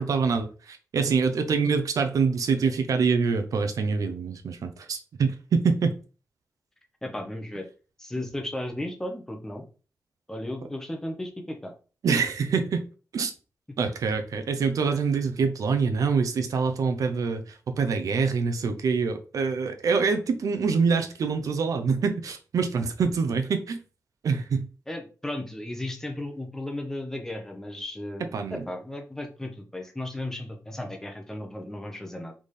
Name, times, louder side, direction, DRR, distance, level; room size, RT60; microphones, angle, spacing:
voice 1, 0.0-5.9 12.0-12.8 13.1-13.3 13.8-23.8 24.2-24.7 28.3-28.6, right 5 dB, 75° right, 7 dB, 0.6 m, -25 dB
voice 2, 7.0-7.7 8.0-9.6 10.3-11.7 13.7-13.8 24.9-32.3, left 1 dB, 10° left, 3 dB, 0.8 m, -35 dB
4.1 x 3.5 x 3.3 m, 0.35 s
wide cardioid pair, 170°, 6 cm